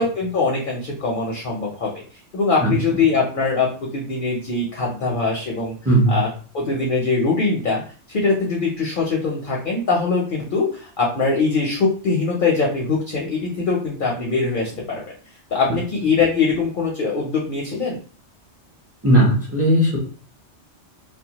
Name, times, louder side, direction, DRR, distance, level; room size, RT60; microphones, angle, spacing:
voice 1, 0.0-1.9 2.3-5.7 6.1-6.3 6.5-7.8 8.1-15.0 15.5-18.0, left 4 dB, 55° left, -2 dB, 0.6 m, -22 dB
voice 2, 5.9-6.2 15.7-15.8 19.0-20.0, right 1 dB, 15° right, -5 dB, 0.5 m, -17 dB
2.1 x 2.1 x 2.8 m, 0.41 s
omnidirectional pair, 1.2 m